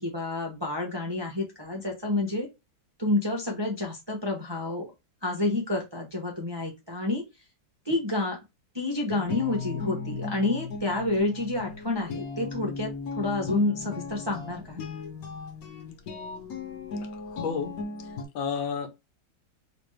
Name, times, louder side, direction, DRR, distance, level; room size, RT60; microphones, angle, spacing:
voice 1, 0.0-2.5 3.0-4.9 5.2-7.2 7.8-8.4 8.7-14.8, left 2 dB, 35° right, 0.4 m, -29 dB
sound 1, 9.1-18.2, left 4 dB, 60° left, 1.2 m, -37 dB
voice 2, 17.3-17.7 18.3-18.9, left 6 dB, 85° left, 1.6 m, -30 dB
3.3 x 3.0 x 3.1 m
omnidirectional pair, 2.1 m